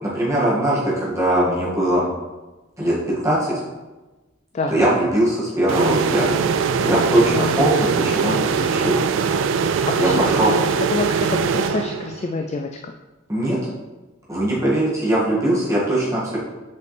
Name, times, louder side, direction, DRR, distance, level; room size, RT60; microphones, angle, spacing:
voice 1, 0.0-2.1 2.8-3.5 4.7-8.4 8.7-9.0 10.0-10.5 13.3-13.6 14.3-16.4, right 1 dB, 15° right, -8 dB, 2.0 m, -20 dB
voice 2, 4.5-4.9 7.3-7.8 8.2-8.7 9.9-12.9, left 3 dB, 35° left, 4 dB, 0.3 m, -27 dB
sound 1, 5.7-12.4, right 6 dB, 70° right, 0.3 m, -22 dB
6.8 x 5.1 x 3.3 m, 1.2 s
head